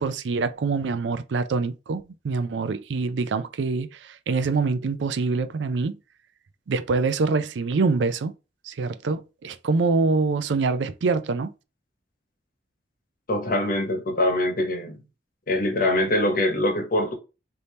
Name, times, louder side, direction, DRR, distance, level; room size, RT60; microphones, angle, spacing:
voice 1, 0.0-6.0 6.7-8.3 8.6-11.5, right 4 dB, 75° right, 0.4 m, -25 dB
voice 2, 13.3-15.0 15.5-17.1, left 1 dB, 50° left, 1.0 m, -23 dB
3.4 x 2.7 x 4.2 m
head